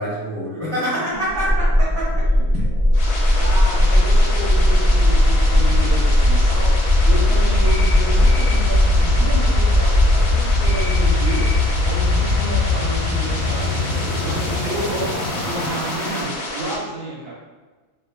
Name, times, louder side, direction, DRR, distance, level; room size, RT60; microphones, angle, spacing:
voice 1, 0.0-2.2 2.5-2.6, equal, 15° left, -11 dB, 1.2 m, -26 dB
voice 2, 1.1-1.7 2.3-2.4 3.3-11.5 11.8-13.8 14.2-17.3, right 1 dB, 80° right, -5 dB, 1.4 m, -31 dB
sound 1, 1.3-16.2, left 1 dB, 30° left, 0.6 m, -18 dB
sound 2, 2.9-16.8, left 1 dB, 85° left, 1.2 m, -30 dB
sound 3, 7.6-8.0 8.2-8.6 10.6-11.0 11.2-11.6, left 3 dB, 50° left, 1.0 m, -33 dB
3.5 x 2.6 x 2.3 m, 1.3 s
omnidirectional pair, 1.6 m